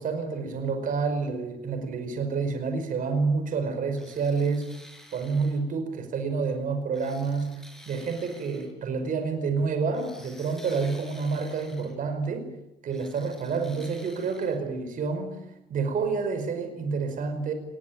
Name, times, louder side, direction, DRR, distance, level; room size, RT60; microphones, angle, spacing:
voice 1, 0.0-4.7 5.1-7.6 7.9-12.5 12.8-15.4 15.7-17.5, right 4 dB, 55° right, 7 dB, 5.2 m, -28 dB
sound 1, 4.0-5.6 6.9-8.7 9.9-12.0 12.9-14.6, equal, ahead, 5.2 m, -51 dB
23.5 x 20.5 x 9.3 m, 0.91 s
cardioid pair, 110°, 17 cm